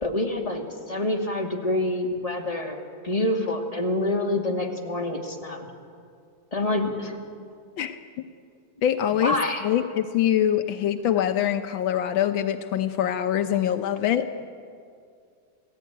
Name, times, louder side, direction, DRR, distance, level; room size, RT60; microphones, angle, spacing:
voice 1, 0.0-5.7 6.5-7.2 9.2-9.7, left 1 dB, 20° left, 1 dB, 2.4 m, -27 dB
voice 2, 8.8-9.4 9.6-14.5, left 10 dB, 85° left, 7 dB, 1.6 m, -24 dB
28.5 x 17.5 x 9.3 m, 2.3 s
omnidirectional pair, 2.1 m